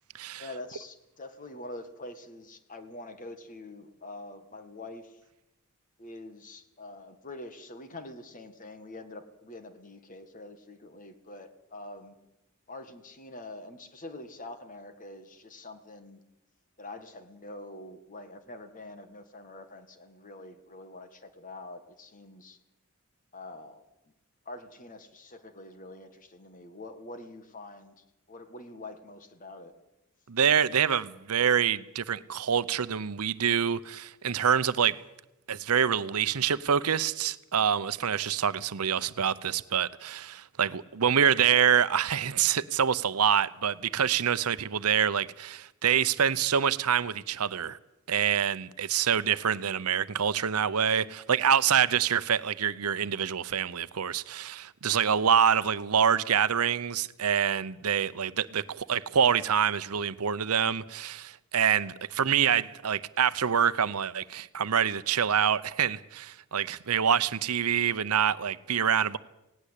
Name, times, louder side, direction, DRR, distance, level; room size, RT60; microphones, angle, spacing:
voice 1, 0.4-5.2 6.0-12.2 12.7-16.2 16.8-22.6 23.3-23.8 24.5-27.9 28.3-29.7, left 2 dB, 35° left, 1.8 m, -45 dB
voice 2, 30.3-35.0 35.5-47.8 48.1-69.2, right 8 dB, 85° right, 0.8 m, -26 dB
18.5 x 17.0 x 8.3 m
head